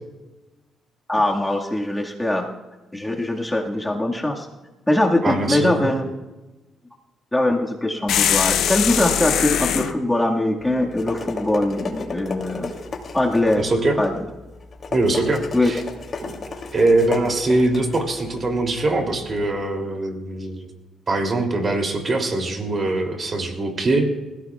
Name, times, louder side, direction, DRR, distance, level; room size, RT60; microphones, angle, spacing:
voice 1, 1.1-2.5 2.9-4.5 4.9-6.1 7.3-12.7 13.1-13.6 14.0-14.1 15.5-15.7, left 1 dB, 10° left, -1 dB, 1.8 m, -22 dB
voice 2, 5.2-5.7 13.6-14.0 14.9-15.8 16.2-16.3 16.7-20.7 21.1-24.2, right 2 dB, 35° right, 3 dB, 2.8 m, -22 dB
sound 1, 8.1-9.9, left 9 dB, 75° left, 0.8 m, -21 dB
sound 2, 10.6-19.5, left 3 dB, 45° left, 2.7 m, -34 dB
28.0 x 16.5 x 2.4 m, 1.1 s
cardioid pair, 90°, 0 cm